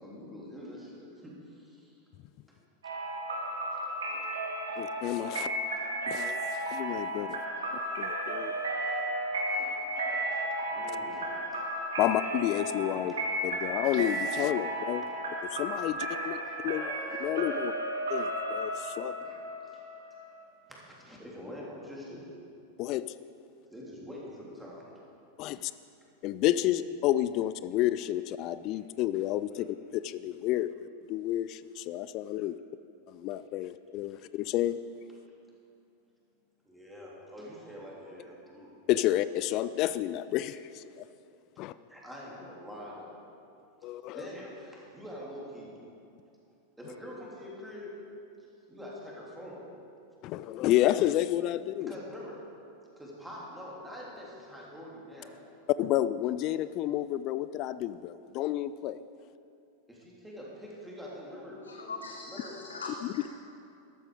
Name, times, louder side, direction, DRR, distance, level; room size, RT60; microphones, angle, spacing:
voice 1, 0.0-2.0 3.7-3.8 4.1-4.2 7.4-7.5 8.9-9.0 9.5-11.6 13.1-13.2 16.2-16.5 17.5-17.6 19.2-19.8 20.7-22.2 23.7-24.9 25.5-25.7 26.6-26.7 36.6-38.8 41.5-41.6 41.9-43.2 44.1-45.7 46.8-48.0 48.7-49.6 51.8-52.5 52.9-55.4 59.9-62.0 62.3-62.6, equal, 5° right, -5 dB, 3.3 m, -45 dB
sound 1, 2.8-20.4, right 1 dB, 65° right, 2.0 m, -34 dB
voice 2, 4.8-5.5 6.1-7.4 8.0-8.5 12.0-13.1 13.4-15.1 15.5-16.4 16.6-17.7 18.1-19.1 22.8-23.0 25.4-25.7 26.2-32.5 33.1-34.8 38.9-41.0 41.6-41.7 43.8-44.3 50.2-51.9 55.8-59.0 63.0-63.1, left 13 dB, 40° left, 15 dB, 0.3 m, -30 dB
voice 3, 61.6-63.3, left 3 dB, 70° left, 3 dB, 0.8 m, -41 dB
13.0 x 13.0 x 5.0 m, 2.5 s
figure-of-eight pair, 90°, 0 cm